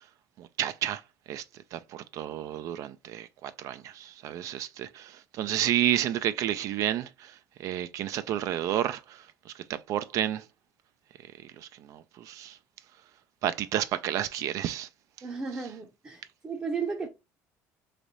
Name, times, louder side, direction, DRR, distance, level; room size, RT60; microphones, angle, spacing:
voice 1, 0.4-1.0 1.3-1.4 1.7-7.3 7.6-9.2 9.5-10.4 11.4-12.6 13.4-14.9, right 11 dB, 60° right, 0.3 m, -31 dB
voice 2, 15.2-17.1, right 5 dB, 25° right, 0.7 m, -34 dB
3.3 x 2.6 x 3.9 m
cardioid pair, 110°, 6 cm